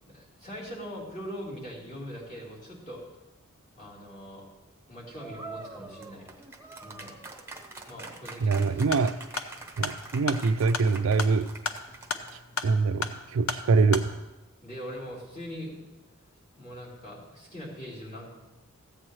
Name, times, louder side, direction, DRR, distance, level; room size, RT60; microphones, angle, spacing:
voice 1, 0.1-3.0 3.8-4.5 4.9-6.3 6.8-7.1 7.9-8.8 14.6-15.8 16.6-18.4, equal, 35° left, -7 dB, 3.5 m, -41 dB
sound 1, 5.1-12.6, right 3 dB, 10° right, 0.8 m, -44 dB
voice 2, 8.4-9.2 9.8-11.5 12.6-14.2, right 4 dB, 65° right, 12 dB, 0.4 m, -24 dB
sound 2, 8.9-14.1, left 5 dB, 70° left, 0.8 m, -35 dB
14.5 x 8.7 x 3.2 m, 1.0 s
head